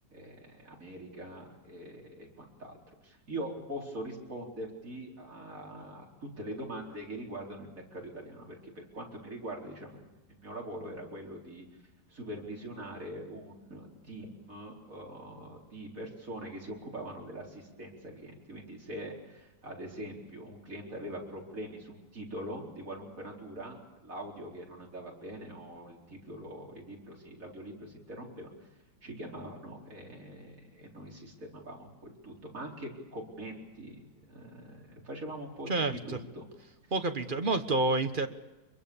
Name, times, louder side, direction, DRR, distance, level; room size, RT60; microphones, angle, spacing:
voice 1, 0.1-6.0 6.4-10.0 10.3-11.6 12.1-23.8 24.0-28.7 29.0-34.0 34.3-35.7 36.1-36.5, right 1 dB, 45° right, 0 dB, 4.7 m, -43 dB
voice 2, 35.7-36.2 36.9-38.3, right 2 dB, 30° right, 8 dB, 1.3 m, -29 dB
25.5 x 23.0 x 7.1 m, 1.1 s
omnidirectional pair, 1.9 m